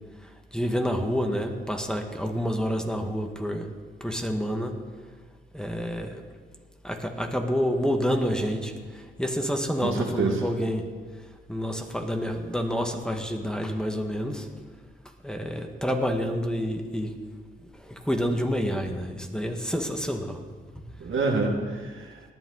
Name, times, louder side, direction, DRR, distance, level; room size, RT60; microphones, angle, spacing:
voice 1, 0.2-3.7 4.0-4.7 5.5-6.3 6.8-10.8 11.5-14.5 15.2-17.1 17.8-20.4 20.8-20.9, equal, 5° left, 3 dB, 1.8 m, -28 dB
voice 2, 9.8-10.5 21.0-22.3, right 3 dB, 75° right, 1 dB, 2.0 m, -27 dB
18.5 x 11.0 x 4.1 m, 1.5 s
cardioid pair, 55°, 21 cm